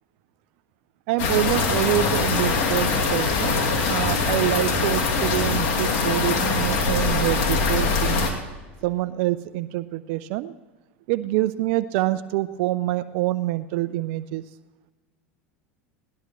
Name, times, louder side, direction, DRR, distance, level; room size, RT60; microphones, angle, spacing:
voice 1, 1.1-8.3 8.8-10.5 11.1-14.4, right 16 dB, 60° right, 13 dB, 0.5 m, -26 dB
sound 1, 1.2-8.3, left 4 dB, 65° left, 2.5 m, -22 dB
20.0 x 18.5 x 3.1 m, 1.3 s
hypercardioid pair, 85°, 7 cm